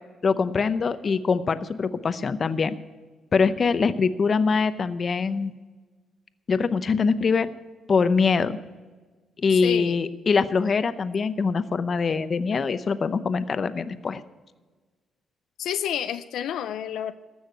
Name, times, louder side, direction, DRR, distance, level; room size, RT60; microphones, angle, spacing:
voice 1, 0.2-2.7 3.3-5.5 6.5-7.5 7.9-8.6 9.4-14.2, left 5 dB, 45° left, 13 dB, 0.7 m, -23 dB
voice 2, 9.5-10.0 15.6-17.1, left 10 dB, 80° left, 10 dB, 0.5 m, -29 dB
14.0 x 6.4 x 9.4 m, 1.3 s
cardioid pair, 90°, 0 cm